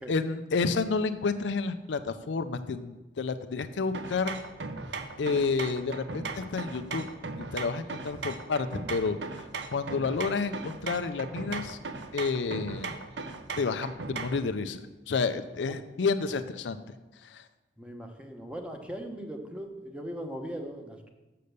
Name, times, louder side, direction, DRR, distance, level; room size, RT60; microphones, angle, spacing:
voice 1, 0.1-4.4 5.2-7.0 7.5-9.5 9.7-11.8 12.1-13.0 13.6-16.8 17.2-17.4, left 4 dB, 75° left, 10 dB, 0.5 m, -30 dB
sound 1, 3.9-14.5, right 4 dB, 75° right, 0.7 m, -38 dB
voice 2, 17.8-21.1, equal, 5° right, 3 dB, 0.9 m, -39 dB
6.7 x 6.7 x 6.6 m, 1.1 s
head